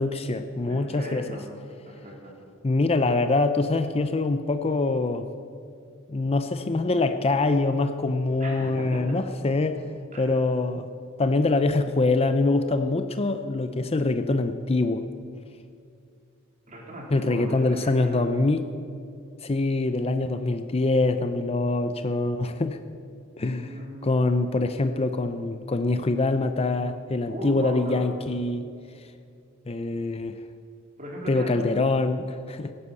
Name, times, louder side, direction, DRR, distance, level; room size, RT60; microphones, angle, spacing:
voice 1, 0.0-1.4 2.6-5.3 6.1-9.9 10.2-10.9 11.2-15.1 17.1-18.6 19.4-22.8 23.4-28.6 29.0-29.1 29.7-30.4 31.3-32.7, left 2 dB, 30° left, 9 dB, 0.6 m, -24 dB
voice 2, 0.7-1.4 1.9-2.3 8.4-9.2 10.1-10.3 16.7-18.2 23.6-24.1 27.3-28.1 31.0-31.5, equal, 40° right, -2 dB, 3.9 m, -38 dB
17.0 x 9.8 x 8.2 m, 2.3 s
head